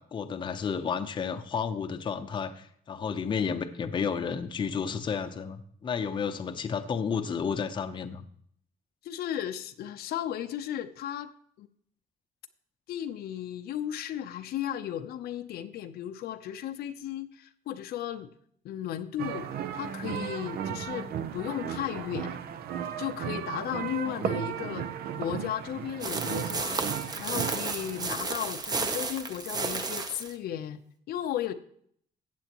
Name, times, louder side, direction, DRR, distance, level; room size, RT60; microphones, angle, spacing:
voice 1, 0.0-8.2, left 6 dB, 30° left, 8 dB, 0.7 m, -32 dB
voice 2, 9.0-11.3 11.6-11.7 12.9-18.3 18.6-19.5 19.7-22.4 23.0-24.9 25.2-26.8 27.2-30.8 31.1-31.5, left 10 dB, 80° left, 8 dB, 0.7 m, -35 dB
sound 1, 19.2-28.2, right 8 dB, 75° right, 0.7 m, -35 dB
sound 2, 26.0-30.3, right 4 dB, 25° right, 0.8 m, -32 dB
14.5 x 8.4 x 3.0 m, 0.63 s
cardioid pair, 165°, 16 cm